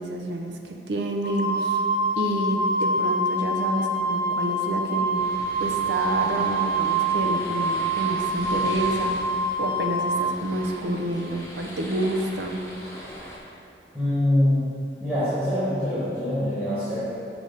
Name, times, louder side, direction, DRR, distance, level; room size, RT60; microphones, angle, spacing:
voice 1, 0.0-1.8 2.2-5.3 5.6-9.2 9.6-12.6, right 1 dB, 75° right, 2 dB, 0.6 m, -28 dB
Wind instrument woodwind instrument, 1.2-10.2, right 2 dB, 90° left, 1.5 m, -25 dB
sound 1, 5.1-13.4, equal, 15° left, 0.8 m, -41 dB
voice 2, 13.9-14.7 15.0-17.1, left 1 dB, 10° right, -13 dB, 1.3 m, -24 dB
6.1 x 3.2 x 5.2 m, 2.7 s
head